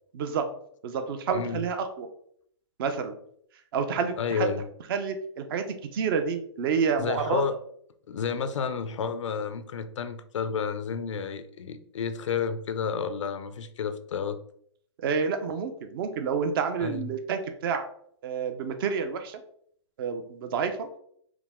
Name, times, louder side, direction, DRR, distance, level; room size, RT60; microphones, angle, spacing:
voice 1, 0.1-0.5 0.8-2.1 2.8-3.1 3.7-4.5 4.9-5.6 5.9-7.4 15.0-17.9 18.2-19.4 20.0-20.9, right 6 dB, 50° right, 7 dB, 0.6 m, -29 dB
voice 2, 1.3-1.6 4.2-4.6 7.0-7.6 8.1-14.4 16.8-17.1, left 6 dB, 85° left, 11 dB, 0.5 m, -31 dB
4.7 x 2.1 x 3.5 m, 0.65 s
hypercardioid pair, 140°, 15 cm